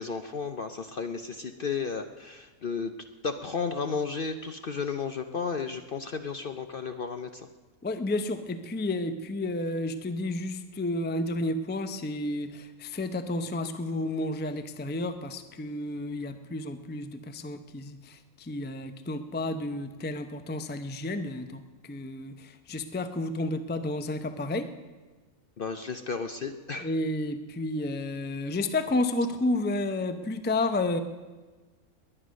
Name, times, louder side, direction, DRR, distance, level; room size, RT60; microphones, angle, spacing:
voice 1, 0.0-7.5 25.6-26.9, left 5 dB, 50° left, 8 dB, 0.7 m, -33 dB
voice 2, 7.8-21.6 21.9-24.7 26.8-31.0, left 2 dB, 15° left, 9 dB, 0.4 m, -31 dB
20.5 x 10.0 x 6.3 m, 1.3 s
omnidirectional pair, 1.5 m